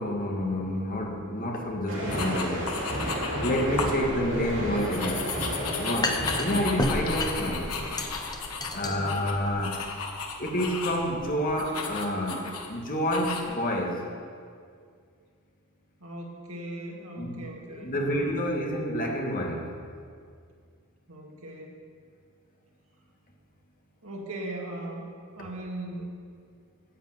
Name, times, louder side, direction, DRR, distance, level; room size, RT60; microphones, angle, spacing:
voice 1, 0.0-2.7 3.4-5.2 5.6-7.7 8.7-9.8 10.4-14.0 17.2-17.4 17.8-19.7, equal, 40° left, 0 dB, 1.8 m, -29 dB
sound 1, 1.9-8.9, equal, 60° right, 3.6 m, -33 dB
sound 2, 2.1-4.0 4.4-11.1 11.5-12.7 13.1-13.4, left 5 dB, 85° left, 1.4 m, -35 dB
sound 3, 3.5-11.3, left 2 dB, 20° left, 0.9 m, -34 dB
voice 2, 3.6-4.1 8.7-9.1 16.0-18.4 21.1-21.8 24.0-25.1 25.3-26.1, right 1 dB, 80° right, 0 dB, 2.1 m, -39 dB
10.0 x 8.7 x 8.0 m, 2.2 s
head